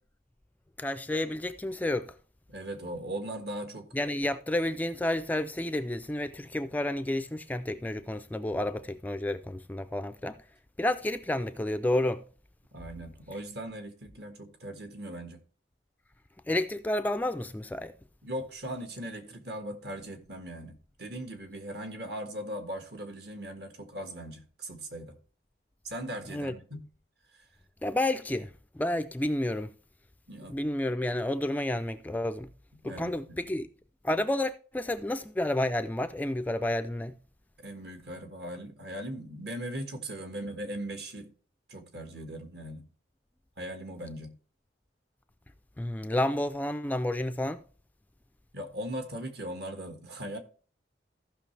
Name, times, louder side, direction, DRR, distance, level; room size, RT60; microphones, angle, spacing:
voice 1, 0.8-2.1 3.9-10.4 10.8-12.2 16.5-17.9 26.3-26.5 27.8-29.7 30.5-32.5 32.8-33.7 34.0-37.1 45.8-47.6, left 1 dB, 10° left, 0.3 m, -30 dB
voice 2, 2.5-3.9 12.7-15.4 18.2-25.2 25.8-26.9 27.3-27.4 30.3-30.6 32.8-33.4 37.6-41.3 41.7-42.9 43.6-44.4 48.5-50.4, right 1 dB, 60° right, 1.6 m, -39 dB
15.0 x 5.8 x 3.3 m
head